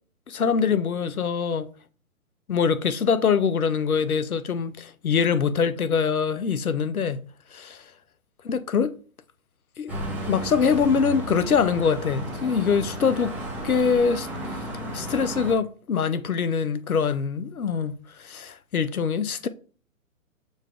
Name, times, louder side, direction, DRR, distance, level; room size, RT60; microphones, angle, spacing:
voice 1, 0.3-1.7 2.5-7.2 7.5-7.8 8.5-8.9 9.8-9.9 10.3-13.4 13.6-14.6 14.9-19.5, left 6 dB, 90° left, 0.6 m, -24 dB
sound 1, 9.9-15.5, right 1 dB, 5° right, 0.6 m, -33 dB
6.4 x 2.4 x 3.3 m
figure-of-eight pair, 135°, 42 cm